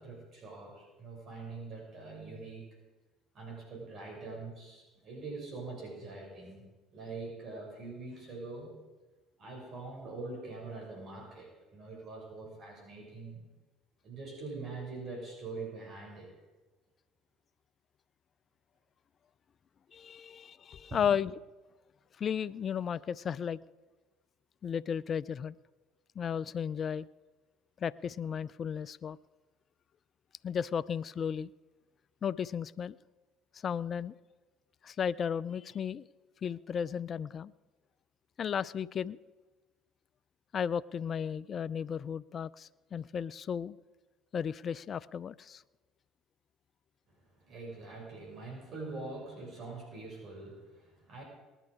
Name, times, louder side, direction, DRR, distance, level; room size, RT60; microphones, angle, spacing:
voice 1, 0.0-2.8 3.3-8.7 9.4-13.4 14.0-16.3 20.9-21.2 47.1-51.2, right 3 dB, 50° right, -1 dB, 6.1 m, -44 dB
voice 2, 19.9-21.4 22.2-23.6 24.6-25.5 26.2-27.1 27.8-29.2 30.4-31.5 32.2-33.0 33.5-34.1 34.8-36.1 36.4-37.5 38.4-39.2 40.5-43.8 44.3-45.6, left 7 dB, 45° left, 18 dB, 0.4 m, -34 dB
19.5 x 11.0 x 4.8 m, 1.2 s
hypercardioid pair, 70°, 0 cm